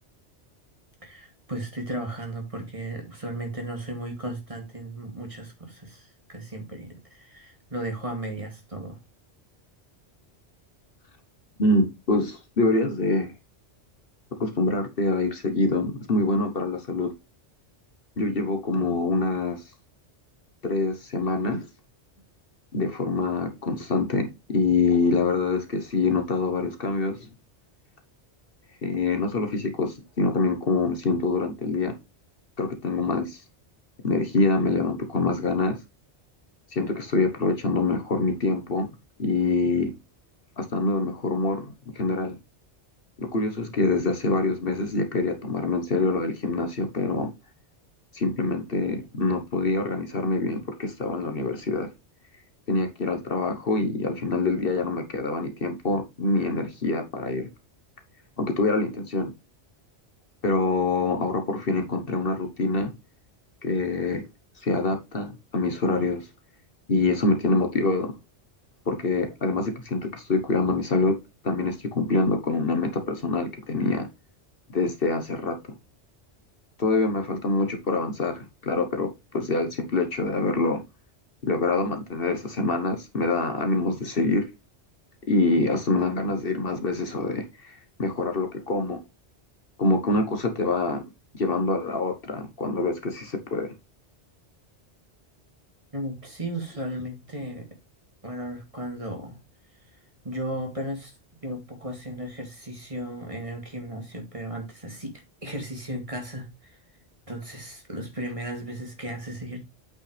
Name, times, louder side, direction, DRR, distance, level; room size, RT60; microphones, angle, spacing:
voice 1, 1.0-9.0 95.9-97.7 98.2-99.4 100.2-101.1 101.4-105.1 105.4-106.8 107.3-109.6, right 1 dB, 30° right, 2.4 m, -35 dB
voice 2, 11.6-13.3 14.4-17.1 18.2-19.6 20.6-21.7 22.7-27.3 28.8-31.9 32.6-33.4 34.0-35.8 36.7-38.9 39.2-39.9 40.6-41.7 41.9-42.4 43.2-47.3 48.1-51.9 52.7-57.5 58.4-59.3 60.4-62.9 63.6-64.2 64.6-66.3 66.9-68.1 68.9-71.2 71.4-74.1 74.7-75.6 76.8-80.8 81.4-84.5 85.3-89.0 89.8-91.0 91.3-93.7, left 3 dB, 55° left, 1.5 m, -25 dB
8.5 x 5.6 x 3.3 m
omnidirectional pair, 1.1 m